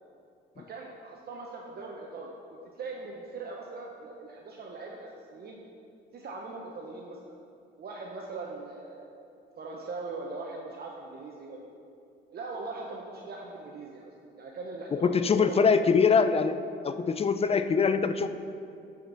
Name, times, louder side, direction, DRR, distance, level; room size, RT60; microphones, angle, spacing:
voice 1, 0.7-2.4 2.7-5.6 6.1-7.3 7.8-9.1 9.6-11.6 12.3-15.7, right 3 dB, 55° right, -1 dB, 0.9 m, -40 dB
voice 2, 14.9-16.6 16.8-18.3, left 5 dB, 30° left, 11 dB, 0.4 m, -23 dB
11.5 x 5.2 x 4.0 m, 2.5 s
cardioid pair, 90°, 20 cm